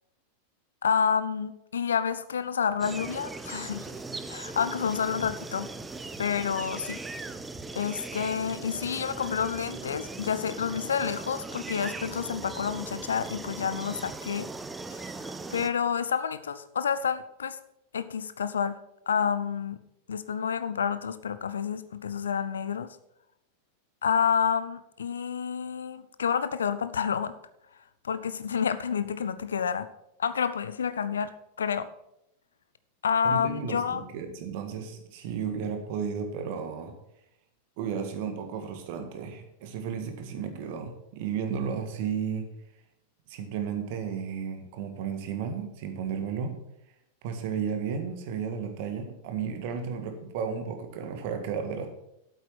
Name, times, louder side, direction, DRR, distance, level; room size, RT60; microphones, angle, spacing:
voice 1, 0.8-3.9 4.3-5.7 6.2-7.0 7.8-14.5 14.9-17.6 17.9-18.8 19.1-19.8 20.1-22.9 24.0-27.3 28.0-29.9 30.2-31.3 31.6-31.9 33.0-34.0, left 7 dB, 70° left, 14 dB, 0.6 m, -29 dB
sound 1, 2.8-15.7, right 3 dB, 10° right, 0.7 m, -39 dB
voice 2, 33.2-36.9 37.8-42.5 43.3-46.6 47.2-51.9, right 6 dB, 50° right, 6 dB, 1.7 m, -33 dB
8.4 x 8.3 x 6.3 m, 0.83 s
figure-of-eight pair, 90°, 0 cm